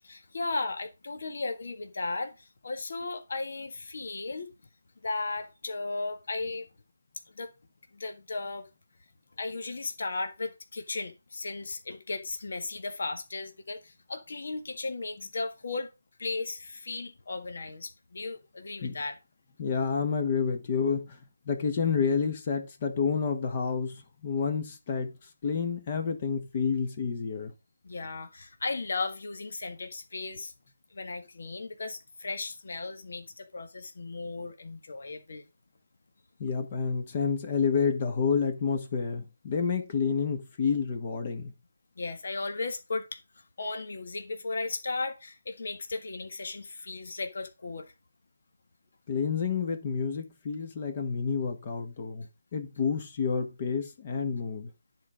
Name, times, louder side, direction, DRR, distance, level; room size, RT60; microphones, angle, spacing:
voice 1, 0.0-4.5 5.0-6.7 7.3-7.5 7.9-8.7 9.4-15.9 16.2-19.2 27.8-30.5 30.9-35.5 42.0-47.9, left 3 dB, 60° left, 1.6 m, -36 dB
voice 2, 19.6-21.2 21.5-25.1 25.4-27.5 36.4-41.5 49.1-52.2 52.5-54.7, left 5 dB, 30° left, 1.3 m, -29 dB
10.0 x 4.5 x 5.0 m
figure-of-eight pair, 165°, 0 cm